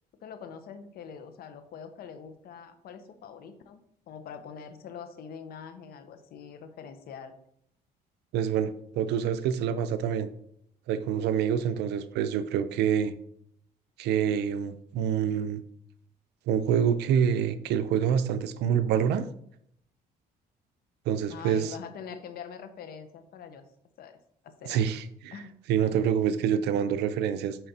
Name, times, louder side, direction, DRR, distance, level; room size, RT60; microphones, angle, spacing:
voice 1, 0.2-3.8 4.1-7.4 21.3-23.6 24.0-24.2 24.4-24.9 25.3-25.9, left 7 dB, 65° left, 9 dB, 1.0 m, -44 dB
voice 2, 8.3-10.3 10.9-13.1 14.0-15.6 16.5-19.2 21.1-21.7 24.6-25.3 25.7-27.6, right 8 dB, 80° right, 11 dB, 0.7 m, -26 dB
9.1 x 4.3 x 4.3 m, 0.70 s
cardioid pair, 110°, 17 cm